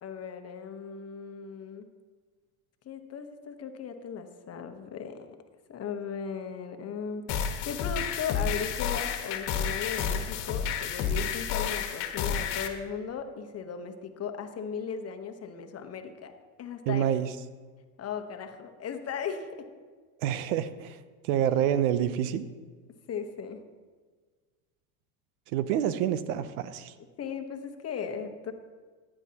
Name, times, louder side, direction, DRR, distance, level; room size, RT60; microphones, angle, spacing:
voice 1, 0.0-1.9 2.8-5.3 5.7-16.3 16.6-17.0 18.0-19.7 23.1-23.6 27.2-28.5, left 6 dB, 35° left, 7 dB, 1.1 m, -37 dB
sound 1, 7.3-12.7, left 7 dB, 60° left, 1.4 m, -30 dB
voice 2, 16.9-17.3 20.2-21.0 21.2-22.5 25.5-26.9, right 10 dB, 75° right, 14 dB, 0.8 m, -27 dB
15.0 x 10.0 x 2.9 m, 1.5 s
supercardioid pair, 105°, 44 cm